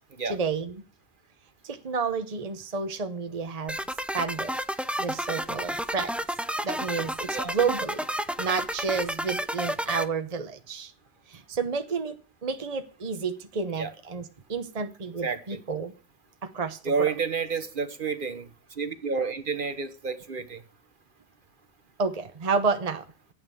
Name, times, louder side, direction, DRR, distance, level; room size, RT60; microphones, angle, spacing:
voice 1, 0.2-0.8 1.6-3.8 4.1-6.1 6.6-8.0 8.4-10.9 11.3-12.2 12.4-15.9 16.4-17.1 22.0-23.1, right 5 dB, 40° right, 7 dB, 1.0 m, -30 dB
sound 1, 3.7-10.0, equal, ahead, 0.6 m, -31 dB
voice 2, 15.2-15.6 16.8-20.6, right 5 dB, 55° right, 11 dB, 1.3 m, -30 dB
14.5 x 9.3 x 7.0 m, 0.38 s
omnidirectional pair, 1.1 m